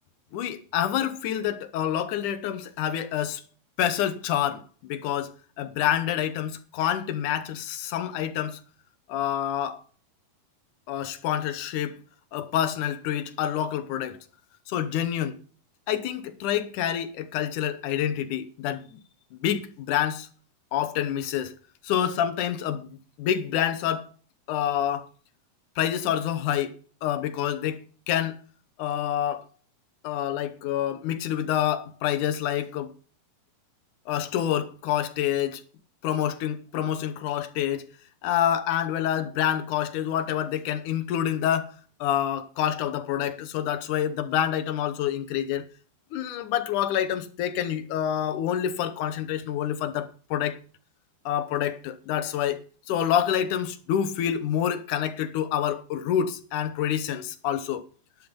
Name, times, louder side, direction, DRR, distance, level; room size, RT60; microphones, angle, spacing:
voice 1, 0.3-3.4 3.8-8.6 9.1-9.8 10.9-12.0 12.3-14.2 14.7-15.4 15.9-19.0 19.3-20.3 20.7-21.5 21.8-22.9 23.2-24.1 24.5-25.1 25.8-26.7 27.0-27.8 28.1-28.4 28.8-29.5 30.0-32.9 34.1-35.6 36.0-37.9 38.2-45.6 46.1-50.6 51.3-52.6 52.9-57.8, left 10 dB, 70° left, 2.4 m, -27 dB
11.5 x 8.9 x 5.3 m
omnidirectional pair, 4.1 m